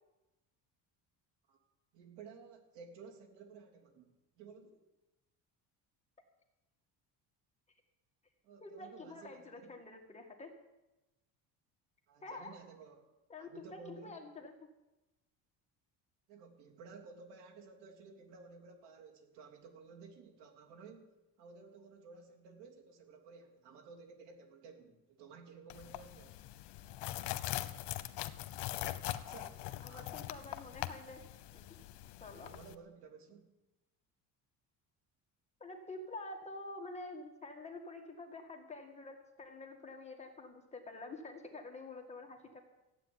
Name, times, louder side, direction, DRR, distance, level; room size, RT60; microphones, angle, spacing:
voice 1, 1.9-4.1 4.4-4.8 8.4-9.8 12.1-14.2 16.3-21.1 21.4-26.4 29.1-30.1 32.4-33.5, right 5 dB, 80° right, 2 dB, 3.2 m, -55 dB
voice 2, 8.6-10.6 12.2-12.6 13.3-14.5 29.8-31.2 31.5-31.6 32.2-32.6 35.6-42.6, left 2 dB, 15° left, 2 dB, 1.7 m, -48 dB
sound 1, 25.7-32.7, left 15 dB, 80° left, 1.0 m, -42 dB
14.5 x 8.3 x 9.7 m, 1.0 s
cardioid pair, 160°, 40 cm